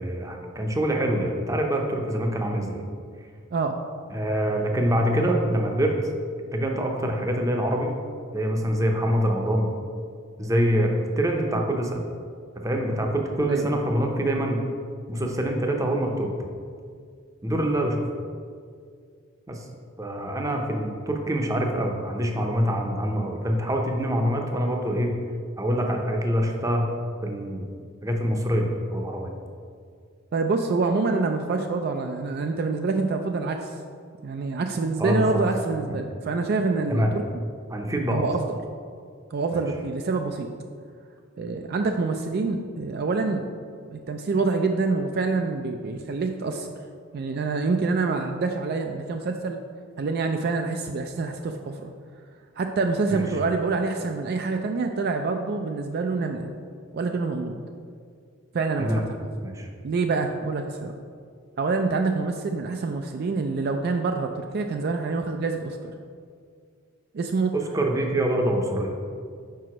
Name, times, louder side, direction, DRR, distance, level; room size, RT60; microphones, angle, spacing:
voice 1, 0.0-2.8 4.1-5.9 6.5-7.9 8.3-9.7 10.4-12.0 12.6-14.6 15.1-16.3 17.4-18.0 19.5-19.7 20.0-25.1 25.6-26.9 27.2-27.6 28.0-29.3 35.0-35.4 35.9-36.0 36.9-37.1 37.7-38.2 53.1-53.2 58.8-59.0 59.4-59.7 67.5-69.0, equal, 15° right, 2 dB, 0.6 m, -25 dB
voice 2, 30.3-33.8 34.2-37.2 38.1-38.6 39.3-40.5 41.4-43.5 43.9-46.7 47.1-49.6 50.0-51.9 52.6-56.5 56.9-57.6 58.5-59.0 59.8-60.9 61.6-65.9 67.1-67.5, right 3 dB, 50° right, 4 dB, 0.3 m, -26 dB
5.1 x 4.7 x 5.9 m, 2.2 s
head